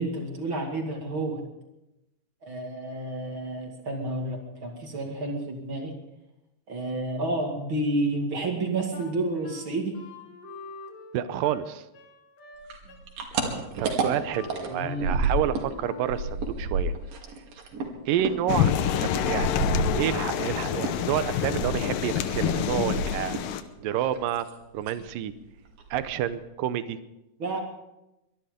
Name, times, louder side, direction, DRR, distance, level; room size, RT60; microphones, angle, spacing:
voice 1, 0.0-1.4 2.4-5.9 6.7-10.0 14.7-15.2 27.4-27.6, right 2 dB, 40° right, 2 dB, 2.7 m, -30 dB
Wind instrument woodwind instrument, 8.9-16.4, left 4 dB, 55° left, 3.1 m, -45 dB
voice 2, 11.1-11.8 13.8-16.9 18.1-19.6 20.0-23.4 23.8-24.5 24.7-25.3 25.9-27.0, right 11 dB, 90° right, 12 dB, 2.5 m, -29 dB
sound 1, 12.7-15.7 16.0-20.5 20.8-23.6 23.8-24.5 24.8-25.1 25.4-25.5 25.8-26.3, right 3 dB, 75° right, 3.7 m, -30 dB
sound 2, 18.5-23.6, left 10 dB, 80° left, 2.6 m, -27 dB
23.0 x 12.0 x 5.2 m, 0.91 s
omnidirectional pair, 3.9 m